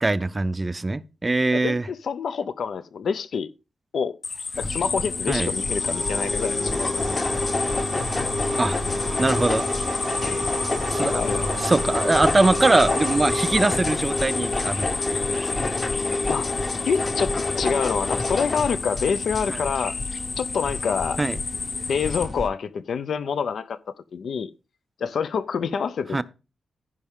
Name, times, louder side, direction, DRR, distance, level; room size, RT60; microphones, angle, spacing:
voice 1, 0.0-1.8 5.3-5.5 8.6-8.8 9.2-9.7 10.9-11.1 11.5-15.5 19.5-19.6 21.2-21.4 26.1-26.2, right 2 dB, 20° right, 0.4 m, -22 dB
voice 2, 1.5-3.5 3.9-4.2 4.6-7.2 9.2-9.4 10.2-10.4 11.0-11.5 16.3-16.5 16.8-19.9 20.4-21.2 21.9-23.8 24.1-24.5 25.0-26.2, left 6 dB, 65° left, 0.6 m, -27 dB
sound 1, 4.2-22.2, left 4 dB, 50° left, 2.7 m, -31 dB
sound 2, 4.5-22.5, left 2 dB, 30° left, 1.0 m, -28 dB
sound 3, 5.3-13.8, right 6 dB, 75° right, 0.9 m, -36 dB
15.5 x 5.5 x 3.6 m
wide cardioid pair, 170°, 0 cm